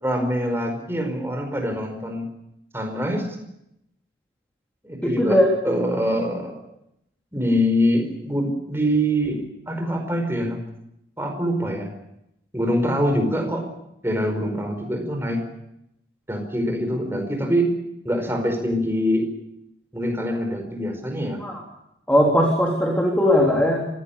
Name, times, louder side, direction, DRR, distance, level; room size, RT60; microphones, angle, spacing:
voice 1, 0.0-2.3 2.7-3.4 4.8-6.6 7.3-10.6 11.2-11.9 12.5-13.6 14.0-15.4 16.3-17.7 18.0-19.3 19.9-21.4, equal, 15° right, 4 dB, 4.9 m, -24 dB
voice 2, 5.0-5.8 21.4-21.6 22.1-23.9, equal, 5° left, -1 dB, 3.4 m, -19 dB
25.5 x 16.5 x 8.7 m, 0.83 s
head